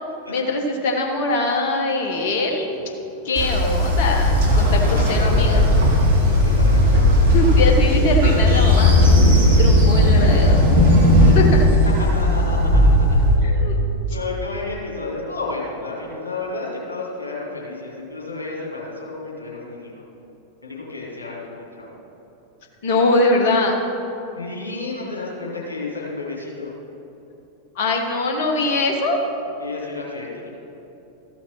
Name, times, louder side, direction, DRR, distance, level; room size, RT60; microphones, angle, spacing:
voice 1, 0.3-2.7 3.2-5.6 7.3-8.9 9.6-10.9 11.3-11.8 13.4-13.8 22.8-23.8 27.7-29.2, left 2 dB, 50° left, 2 dB, 1.4 m, -22 dB
Train, 3.3-13.3, left 1 dB, 55° right, 2.4 m, -15 dB
voice 2, 4.8-7.7 8.3-8.7 12.0-13.2 13.6-19.9 20.6-21.9 24.4-26.7 29.6-30.5, left 3 dB, 75° left, -3 dB, 2.5 m, -32 dB
14.0 x 5.9 x 5.8 m, 3.0 s
figure-of-eight pair, 90°, 0 cm